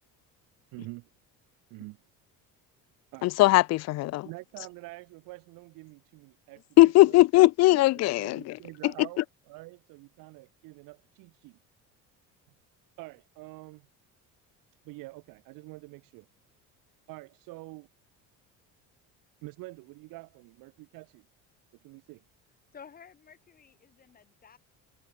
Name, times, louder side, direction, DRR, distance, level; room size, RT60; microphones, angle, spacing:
voice 1, 0.7-1.1 1.7-2.0 3.1-3.3 4.2-6.6 7.0-7.2 7.7-11.6 13.0-13.9 14.8-16.3 17.1-17.9 19.4-21.3 21.8-22.2, right 22 dB, 75° right, 1.7 m, -46 dB
voice 2, 3.2-4.3 6.8-8.6, left 18 dB, 50° left, 0.6 m, -19 dB
voice 3, 22.7-24.6, left 7 dB, 25° left, 7.7 m, -52 dB
cardioid pair, 170°, 34 cm